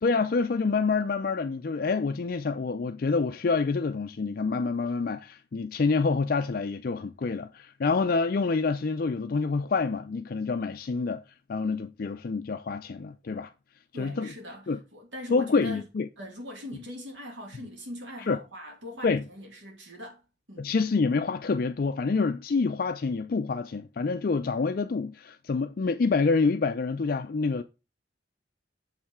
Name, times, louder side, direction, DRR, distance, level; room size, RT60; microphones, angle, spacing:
voice 1, 0.0-11.2 11.5-13.5 13.9-14.3 14.7-14.8 15.3-16.1 18.3-18.4 19.0-19.2 20.6-27.6, left 4 dB, 50° left, 0.4 m, -27 dB
voice 2, 13.9-15.9 16.2-20.2 20.5-20.7, left 1 dB, 90° right, 2.5 m, -41 dB
7.3 x 5.6 x 3.6 m
head